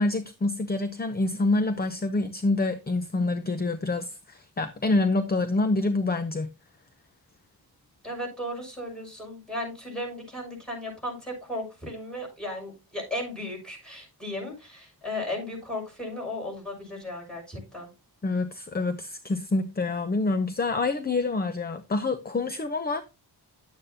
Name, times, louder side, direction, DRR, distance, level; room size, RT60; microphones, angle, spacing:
voice 1, 0.0-6.5 18.2-23.0, left 2 dB, 25° left, 0.7 m, -27 dB
voice 2, 8.0-17.9, left 1 dB, ahead, 6.5 m, -35 dB
11.5 x 8.9 x 2.8 m
wide cardioid pair, 145°, 39 cm